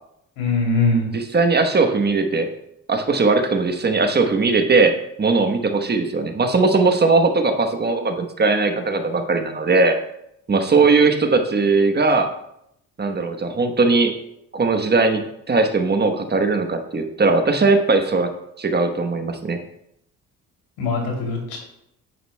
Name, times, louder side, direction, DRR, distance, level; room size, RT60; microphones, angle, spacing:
voice 1, 0.4-1.1 20.8-21.6, left 3 dB, 90° left, 0 dB, 2.8 m, -21 dB
voice 2, 1.1-2.5 2.9-10.0 10.5-12.3 13.0-14.1 14.5-19.6, right 3 dB, 30° right, 6 dB, 1.0 m, -19 dB
9.1 x 9.1 x 2.2 m, 0.77 s
supercardioid pair, 75°, 35 cm